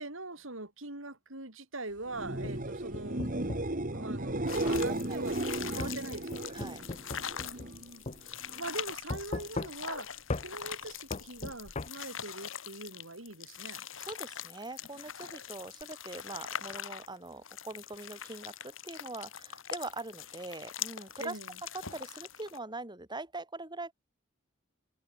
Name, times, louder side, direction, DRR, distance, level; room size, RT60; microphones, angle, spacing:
voice 1, 0.0-3.3 3.9-5.4 5.7-6.5 7.4-8.0 8.6-13.8 21.2-21.5, right 2 dB, 75° right, 6.0 m, -42 dB
sound 1, 2.1-7.8 8.2-8.7 15.8-15.9, right 1 dB, 40° right, 2.6 m, -35 dB
sound 2, 2.2-3.8 4.7-4.9 5.8-7.8 8.1-8.2 9.1-10.0 10.3-10.5 11.1-11.9, left 2 dB, 35° left, 0.8 m, -38 dB
sound 3, 4.5-22.6, left 9 dB, 70° left, 2.6 m, -43 dB
voice 2, 4.5-5.2 5.7-5.9 6.5-6.8 14.0-21.4 21.7-23.9, right 2 dB, 20° right, 4.2 m, -43 dB
head